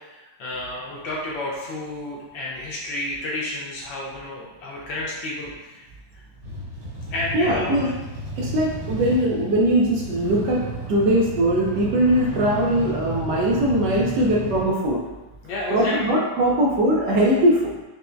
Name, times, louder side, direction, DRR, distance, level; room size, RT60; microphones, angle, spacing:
voice 1, 0.0-5.9 7.1-7.9 15.4-16.1, left 1 dB, 70° left, -5 dB, 1.5 m, -31 dB
sound 1, 6.4-14.6, equal, 45° right, 1.3 m, -33 dB
voice 2, 7.3-7.9 8.4-10.6 10.9-15.0 15.7-17.6, right 1 dB, 75° right, -3 dB, 1.1 m, -20 dB
5.5 x 2.0 x 2.5 m, 1.1 s
omnidirectional pair, 2.2 m